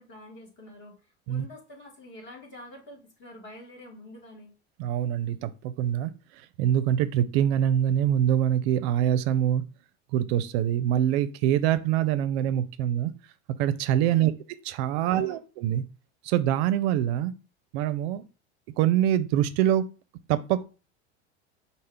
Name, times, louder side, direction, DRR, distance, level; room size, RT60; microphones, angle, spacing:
voice 1, 0.0-4.5 14.1-14.3 15.0-15.4, left 2 dB, 35° left, 1 dB, 2.0 m, -47 dB
voice 2, 4.8-6.1 6.6-9.6 10.1-13.1 13.6-14.3 14.7-15.8 16.2-17.3 17.7-18.2 18.8-19.9 20.3-20.6, right 11 dB, 70° right, 14 dB, 0.5 m, -24 dB
5.4 x 2.1 x 3.3 m, 0.33 s
supercardioid pair, 100°, 33 cm